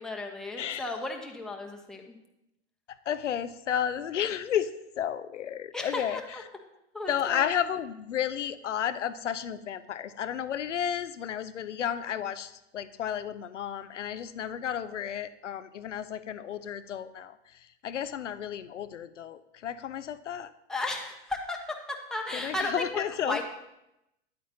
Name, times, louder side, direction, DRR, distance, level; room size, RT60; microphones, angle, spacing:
voice 1, 0.0-2.2 5.7-6.4 6.9-7.5 20.7-23.4, left 2 dB, ahead, 1 dB, 1.0 m, -35 dB
voice 2, 3.1-6.2 7.1-17.4 17.8-20.5 22.4-23.4, left 9 dB, 90° left, 14 dB, 0.5 m, -32 dB
9.6 x 8.7 x 2.8 m, 0.86 s
hypercardioid pair, 95°, 35 cm